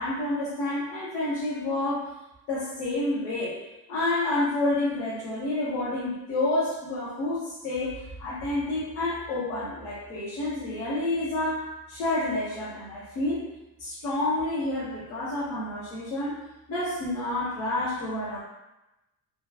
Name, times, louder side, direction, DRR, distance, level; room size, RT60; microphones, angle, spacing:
voice 1, 0.0-2.1 2.5-3.6 3.9-13.5 13.8-16.4 16.7-18.4, left 2 dB, 85° left, -8 dB, 1.0 m, -29 dB
3.1 x 2.3 x 2.3 m, 0.94 s
cardioid pair, 100°, 38 cm